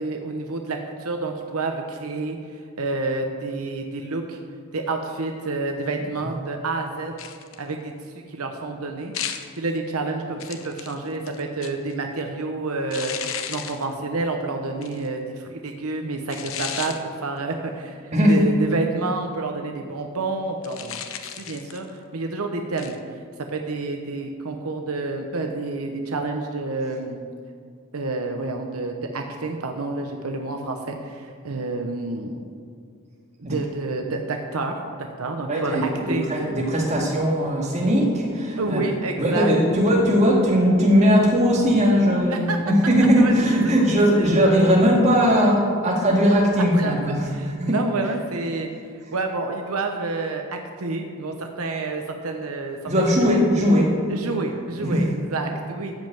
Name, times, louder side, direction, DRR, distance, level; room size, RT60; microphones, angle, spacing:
voice 1, 0.0-2.4 2.8-4.4 4.7-7.1 7.6-7.9 8.3-9.1 9.5-21.0 21.4-23.0 23.5-27.2 27.9-32.4 33.4-36.2 38.6-39.5 42.3-42.6 43.2-43.3 44.2-44.4 46.7-47.0 47.3-48.7 49.1-52.8 53.2-53.4 54.1-55.9, right 3 dB, 80° right, 4 dB, 0.9 m, -29 dB
sound 1, 7.2-7.7 9.1-9.6 10.4-11.9 12.9-13.9 14.8-15.1 16.3-17.0 20.6-21.9 22.8-23.0, left 9 dB, 65° left, 0.8 m, -34 dB
voice 2, 35.5-38.8 39.2-47.8 52.9-53.9 54.8-55.1, equal, 30° right, -2 dB, 2.3 m, -19 dB
14.0 x 5.4 x 7.7 m, 2.2 s
head